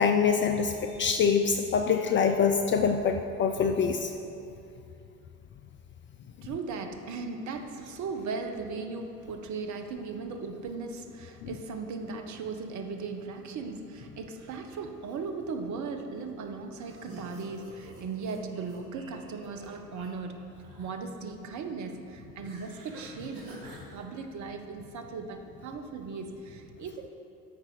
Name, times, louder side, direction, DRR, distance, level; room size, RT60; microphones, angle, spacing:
voice 1, 0.0-4.1, left 6 dB, 25° left, 6 dB, 0.4 m, -25 dB
voice 2, 6.4-20.5 20.8-23.5 23.9-27.1, right 4 dB, 40° right, 6 dB, 1.0 m, -37 dB
sound 1, 16.8-20.1 20.4-21.0 22.4-23.8, right 2 dB, 70° right, 1.9 m, -48 dB
13.5 x 5.6 x 4.7 m, 2.7 s
figure-of-eight pair, 70°, 46 cm